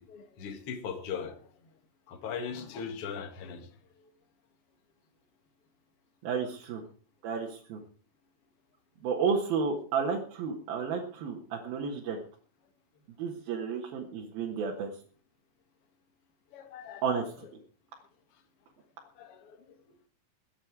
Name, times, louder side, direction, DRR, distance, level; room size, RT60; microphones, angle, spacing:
voice 1, 0.0-1.4 2.1-3.7 16.5-17.3 19.2-19.8, left 6 dB, 45° left, 6 dB, 2.3 m, -39 dB
voice 2, 6.2-6.8 7.2-7.8 9.0-12.2 13.2-14.9 17.0-17.5, right 5 dB, 75° right, -1 dB, 3.4 m, -32 dB
22.0 x 8.9 x 4.7 m, 0.43 s
omnidirectional pair, 4.3 m